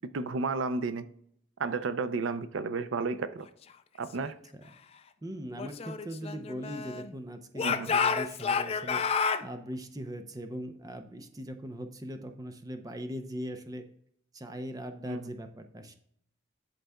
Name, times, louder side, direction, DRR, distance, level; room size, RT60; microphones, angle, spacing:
voice 1, 0.1-1.0 1.6-3.5 4.0-4.3 7.6-7.9 15.1-15.3, right 4 dB, 75° right, 12 dB, 0.5 m, -32 dB
voice 2, 5.2-9.0 9.4-13.8 14.3-15.9, equal, 20° right, 7 dB, 0.5 m, -40 dB
Speech / Shout, 5.6-7.1 7.5-9.4, left 5 dB, 30° left, 0.3 m, -30 dB
11.0 x 4.0 x 2.2 m, 0.67 s
head